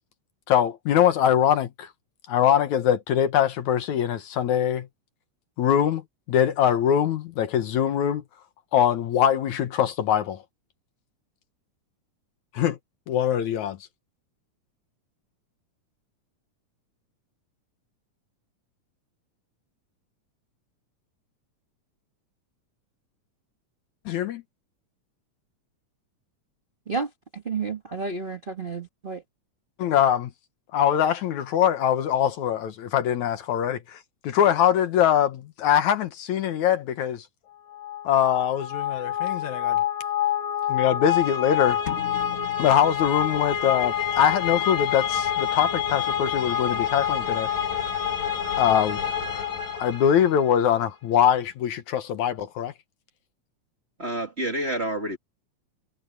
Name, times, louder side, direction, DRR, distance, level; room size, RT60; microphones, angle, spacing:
voice 1, 0.5-1.9 2.3-4.9 5.6-8.2 8.7-10.4 12.5-12.8 13.1-13.8 24.1-24.4 29.8-30.3 30.7-37.3 38.0-39.8 40.7-41.8 42.6-47.5 48.6-49.0 49.7-52.7, left 9 dB, 70° left, 2.4 m, -23 dB
voice 2, 26.9-29.2, right 4 dB, 40° right, 0.7 m, -31 dB
sound 1, 37.7-50.5, left 9 dB, 90° left, 4.9 m, -27 dB
sound 2, 41.9-43.7, left 7 dB, 40° left, 1.0 m, -39 dB
voice 3, 54.0-55.2, right 1 dB, 20° right, 2.2 m, -28 dB
omnidirectional pair, 3.7 m